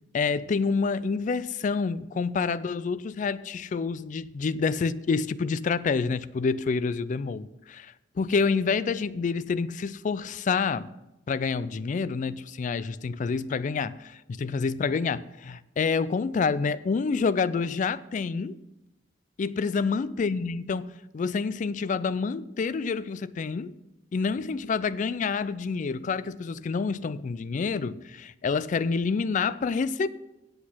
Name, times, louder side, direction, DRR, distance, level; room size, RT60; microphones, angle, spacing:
voice 1, 0.1-10.9 11.3-18.6 19.4-23.7 24.1-30.1, left 5 dB, 45° left, 0.3 m, -28 dB
8.4 x 7.9 x 6.1 m
head